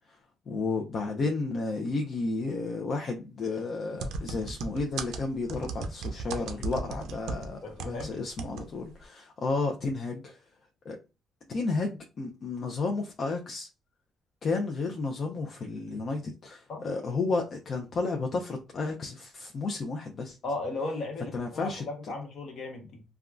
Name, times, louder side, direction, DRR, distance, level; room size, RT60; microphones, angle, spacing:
voice 1, 0.5-10.4 10.8-11.0 11.5-13.7 14.4-20.4 21.3-21.8, left 3 dB, 50° left, 0.5 m, -32 dB
sound 1, 4.0-8.1 8.4-8.7 8.9-9.0, right 4 dB, 85° right, 0.5 m, -35 dB
voice 2, 7.6-8.2 16.7-16.8 20.4-23.0, left 2 dB, 65° left, 1.2 m, -36 dB
3.5 x 2.3 x 2.4 m
cardioid pair, 90°, 0 cm